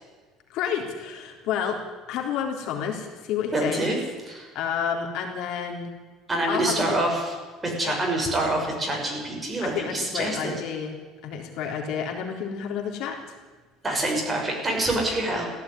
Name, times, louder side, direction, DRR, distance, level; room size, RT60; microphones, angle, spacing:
voice 1, 0.5-1.8 2.1-3.9 4.5-5.9 6.5-6.8 7.8-7.9 9.6-10.9 11.2-13.4, left 7 dB, 60° left, 1 dB, 3.6 m, -30 dB
voice 2, 3.5-4.0 4.3-4.5 6.3-7.3 7.6-10.5 13.8-15.5, right 1 dB, 15° right, 0 dB, 6.1 m, -26 dB
17.0 x 15.5 x 9.9 m, 1.4 s
cardioid pair, 150°, 0 cm